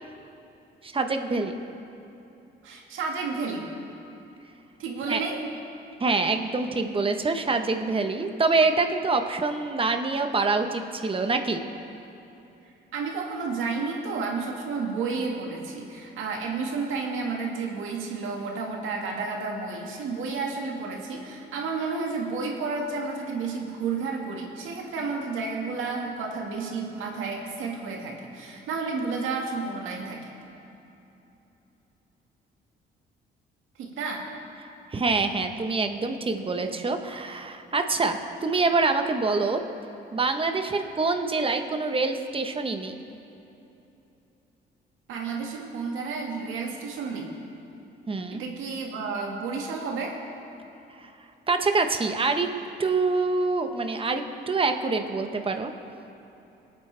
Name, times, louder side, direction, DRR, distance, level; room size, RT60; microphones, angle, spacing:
voice 1, 0.8-1.5 5.1-5.2 6.0-11.6 34.9-39.6 40.1-43.0 48.1-48.4 51.0-51.1 51.5-52.5 52.8-55.7, right 3 dB, 25° right, 6 dB, 1.1 m, -25 dB
voice 2, 2.6-3.7 4.8-5.4 12.9-30.2 33.8-34.3 45.1-47.3 48.3-50.2, right 4 dB, 85° right, 0 dB, 2.0 m, -31 dB
23.0 x 9.0 x 3.4 m, 3.0 s
cardioid pair, 90°, 20 cm